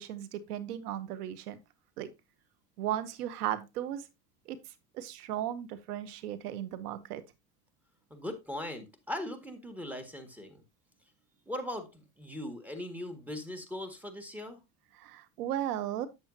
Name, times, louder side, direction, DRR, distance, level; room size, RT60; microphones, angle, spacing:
voice 1, 0.0-1.6 2.0-2.1 2.8-4.1 4.5-4.6 4.9-7.2 15.0-16.1, right 11 dB, 80° right, 0.9 m, -36 dB
voice 2, 8.1-10.6 11.5-14.6, left 1 dB, 5° right, 1.7 m, -39 dB
8.3 x 7.4 x 2.7 m
hypercardioid pair, 90°, 45 cm